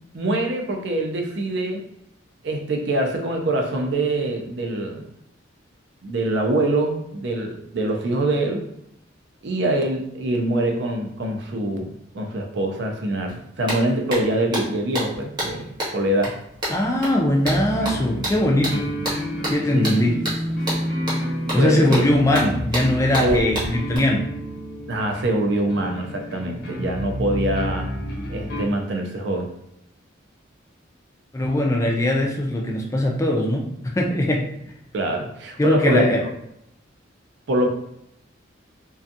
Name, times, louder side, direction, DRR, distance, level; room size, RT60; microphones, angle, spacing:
voice 1, 0.1-1.9 2.4-5.1 6.0-8.6 9.4-16.4 19.7-20.0 21.6-22.0 23.2-23.6 24.9-27.9 28.3-29.5 34.9-36.0 37.5-37.7, right 1 dB, 60° right, 3 dB, 0.4 m, -24 dB
sound 1, 13.3-13.4 13.7-24.0, right 1 dB, 20° right, 0.9 m, -30 dB
voice 2, 16.7-18.9 19.5-20.2 21.5-24.3 31.3-34.5 35.6-36.2, left 1 dB, 15° left, 0 dB, 0.3 m, -20 dB
sound 2, 17.4-28.6, equal, 55° left, 0.6 m, -30 dB
2.5 x 2.3 x 2.6 m, 0.80 s
head